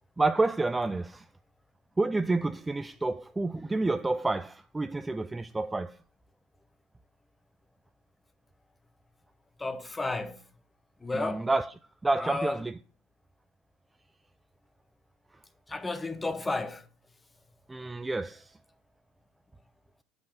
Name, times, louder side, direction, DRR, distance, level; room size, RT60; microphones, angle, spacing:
voice 1, 0.2-1.3 2.0-6.0 11.1-11.7 12.0-12.7 17.7-18.6, right 2 dB, 10° right, 0.3 m, -29 dB
voice 2, 9.6-10.4 11.0-11.5 12.2-12.6 15.7-16.9, left 2 dB, 10° left, 0.8 m, -32 dB
8.0 x 5.4 x 7.1 m
supercardioid pair, 120°, 0 cm